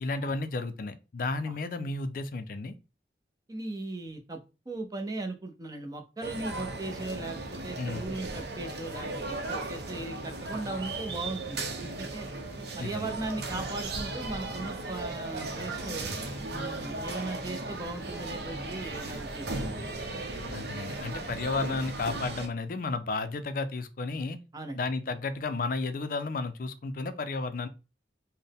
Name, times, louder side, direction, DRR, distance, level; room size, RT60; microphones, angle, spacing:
voice 1, 0.0-2.7 7.8-8.1 12.8-13.1 20.5-24.4 24.7-27.7, left 3 dB, 50° left, 0.4 m, -33 dB
voice 2, 3.5-4.4 4.7-12.3 12.8-16.1 16.5-20.2 24.5-24.8, right 2 dB, 20° right, 0.6 m, -38 dB
sound 1, 6.2-22.5, right 2 dB, 65° right, 0.7 m, -36 dB
4.2 x 2.1 x 3.4 m
head